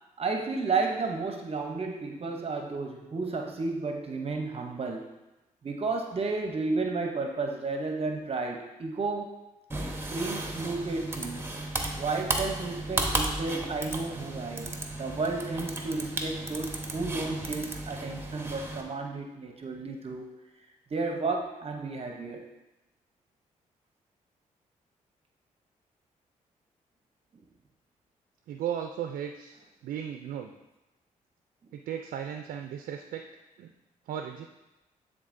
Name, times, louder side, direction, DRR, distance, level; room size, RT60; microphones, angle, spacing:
voice 1, 0.2-5.1 5.6-9.3 10.1-11.4 12.0-20.3 20.9-22.4 27.3-27.4, right 3 dB, 45° right, 2 dB, 0.7 m, -32 dB
sound 1, 9.7-18.8, right 2 dB, 15° right, 0.9 m, -34 dB
voice 2, 28.5-30.5 31.7-33.2 33.6-33.7 34.1-34.5, right 9 dB, 80° right, 5 dB, 0.4 m, -36 dB
10.0 x 3.8 x 2.6 m, 1.0 s
cardioid pair, 65°, 14 cm